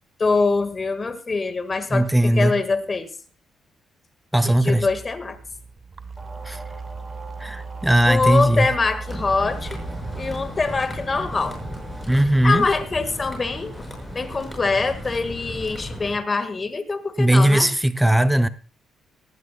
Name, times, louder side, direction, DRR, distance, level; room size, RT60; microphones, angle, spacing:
voice 1, 0.2-3.1 4.4-5.4 8.0-9.8 10.1-11.6 12.4-13.9 14.1-17.7, left 4 dB, 30° left, 1.6 m, -24 dB
voice 2, 1.9-2.5 4.3-4.9 6.4-6.6 7.4-8.7 12.1-12.7 17.2-18.5, right 1 dB, 5° right, 0.6 m, -18 dB
sound 1, 4.5-13.0, right 4 dB, 40° right, 0.9 m, -38 dB
sound 2, 6.2-14.6, right 2 dB, 20° right, 3.9 m, -42 dB
sound 3, 9.1-16.2, equal, 15° left, 5.9 m, -36 dB
19.0 x 15.0 x 2.2 m
cardioid pair, 90°, 0 cm